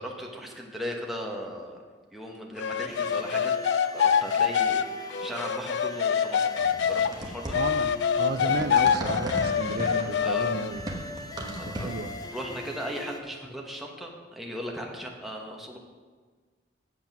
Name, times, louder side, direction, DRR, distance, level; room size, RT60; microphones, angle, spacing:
voice 1, 0.0-1.8 2.1-3.6 3.9-6.5 6.9-7.6 10.2-10.5 11.5-11.9 12.3-15.8, equal, ahead, -1 dB, 1.1 m, -37 dB
sound 1, 2.6-7.1 7.5-10.7, left 7 dB, 60° left, 0.3 m, -25 dB
sound 2, 2.9-13.2, left 1 dB, 20° left, 0.6 m, -41 dB
sound 3, 6.5-12.2, right 1 dB, 20° right, 1.1 m, -37 dB
voice 2, 7.5-10.9 11.2-12.3, right 3 dB, 55° right, 10 dB, 0.5 m, -34 dB
8.1 x 7.2 x 6.0 m, 1.5 s
head